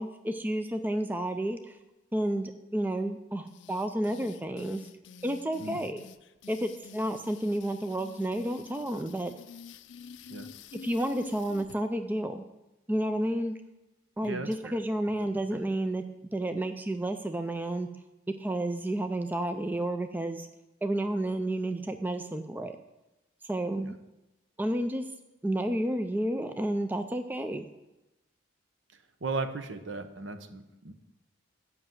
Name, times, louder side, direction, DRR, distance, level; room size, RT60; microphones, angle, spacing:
voice 1, 0.0-1.8 2.1-4.8 5.2-6.0 6.5-9.3 10.7-12.4 12.9-13.5 14.2-16.0 16.3-17.9 18.4-20.5 20.8-22.7 23.4-23.9 24.6-25.0 25.4-27.6, right 1 dB, 10° right, 7 dB, 0.3 m, -31 dB
sound 1, 3.5-11.8, left 5 dB, 65° left, 0.4 m, -48 dB
voice 2, 14.2-14.7 15.5-15.6 23.8-23.9 29.2-30.9, right 3 dB, 65° right, 8 dB, 0.8 m, -36 dB
7.8 x 5.9 x 7.7 m, 0.98 s
head